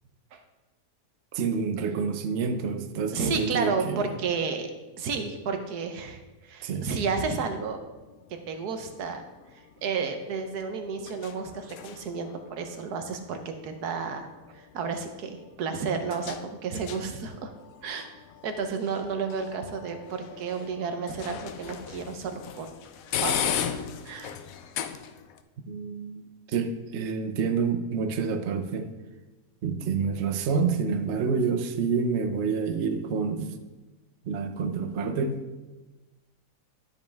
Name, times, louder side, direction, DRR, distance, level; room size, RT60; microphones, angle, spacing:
voice 1, 1.3-4.2 6.6-6.9 25.7-28.9 29.6-33.6 34.2-35.4, right 5 dB, 55° right, 7 dB, 0.8 m, -28 dB
voice 2, 3.1-4.7 5.0-7.8 8.3-9.2 9.8-14.3 14.5-17.5 17.8-18.1 18.4-22.7 23.2-23.7 24.0-24.3, right 5 dB, 75° right, 6 dB, 1.3 m, -32 dB
sound 1, 8.0-25.4, left 8 dB, 70° left, 0.9 m, -38 dB
12.0 x 5.3 x 3.4 m, 1.1 s
omnidirectional pair, 1.7 m